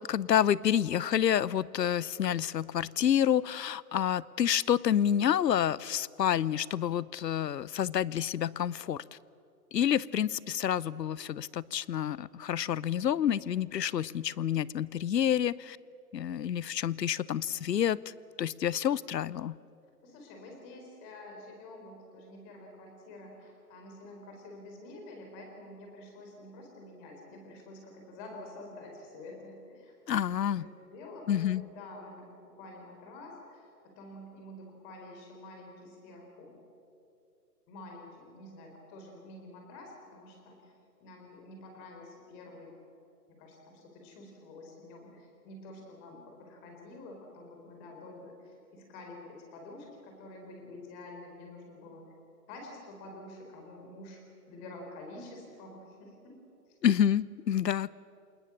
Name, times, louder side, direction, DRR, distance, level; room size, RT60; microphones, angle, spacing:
voice 1, 0.1-9.0 9.7-15.8 16.1-18.0 18.4-19.6 30.1-30.7 31.3-31.6 56.8-57.9, left 9 dB, 85° left, 22 dB, 0.8 m, -28 dB
voice 2, 20.0-29.9 30.6-36.6 37.7-40.7 41.0-42.7 43.4-52.1 52.5-54.2 54.5-56.4 56.7-56.8, left 2 dB, 20° left, 2 dB, 4.3 m, -48 dB
27.0 x 20.0 x 7.3 m, 2.6 s
hypercardioid pair, 160°, 49 cm